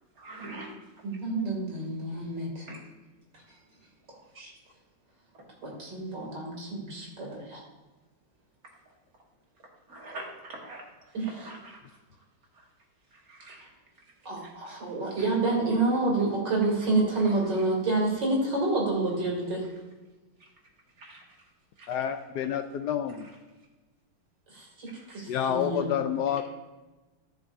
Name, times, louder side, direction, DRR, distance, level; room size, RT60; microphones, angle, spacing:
voice 1, 0.2-0.7 2.7-2.8 9.9-10.8 11.4-11.8 13.3-13.6 21.0-21.2 21.8-21.9 25.1-25.2, right 2 dB, 50° right, -2 dB, 2.4 m, -43 dB
voice 2, 1.0-2.7 4.1-4.5 5.6-7.6 11.1-11.5 14.2-19.6 24.5-24.9 25.1-26.0, right 2 dB, 65° right, -2 dB, 3.3 m, -28 dB
voice 3, 21.9-23.2 25.3-26.4, left 9 dB, 75° left, 7 dB, 1.1 m, -28 dB
13.5 x 6.6 x 2.7 m, 1.1 s
omnidirectional pair, 2.0 m